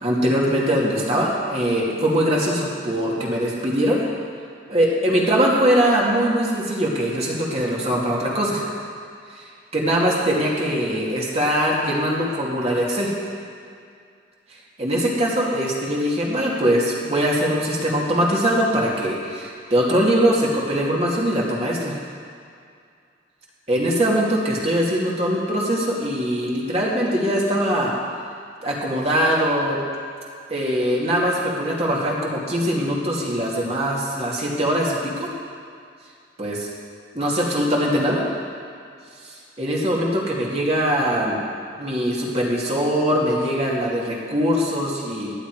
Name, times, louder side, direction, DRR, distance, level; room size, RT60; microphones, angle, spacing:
voice 1, 0.0-4.0 4.7-8.6 9.7-13.1 14.8-22.0 23.7-27.9 28.6-29.8 30.5-35.3 36.4-36.5 37.1-38.2 39.6-41.4 41.8-45.3, equal, 35° right, -4 dB, 2.4 m, -22 dB
17.0 x 10.0 x 4.8 m, 2.3 s
head